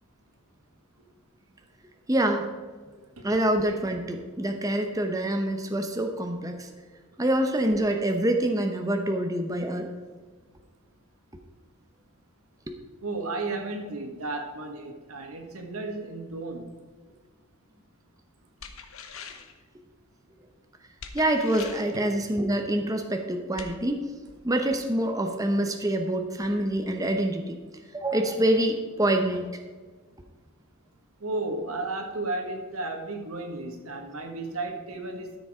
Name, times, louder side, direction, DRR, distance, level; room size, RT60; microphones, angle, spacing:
voice 1, 2.1-2.5 3.2-6.7 7.2-9.9 21.1-24.0 24.4-27.6 27.9-29.6, right 1 dB, 15° right, 4 dB, 0.8 m, -26 dB
voice 2, 13.0-16.7 21.9-22.1 27.4-27.5 31.2-35.4, right 2 dB, 85° right, 4 dB, 1.7 m, -33 dB
sound 1, 18.6-19.6 21.0-22.0 23.6-23.7, left 6 dB, 70° left, 1.0 m, -42 dB
13.0 x 6.8 x 4.9 m, 1.4 s
head